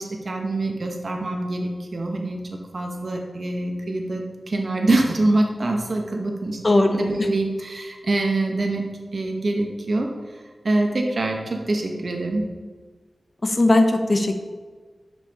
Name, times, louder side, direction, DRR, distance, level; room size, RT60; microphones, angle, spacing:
voice 1, 0.0-2.4 2.7-8.8 9.1-10.1 10.6-12.4, right 2 dB, 60° right, 2 dB, 1.1 m, -25 dB
voice 2, 6.6-7.0 13.4-14.4, left 2 dB, 40° left, 6 dB, 0.7 m, -18 dB
7.3 x 6.7 x 2.9 m, 1.4 s
wide cardioid pair, 70°, 0 cm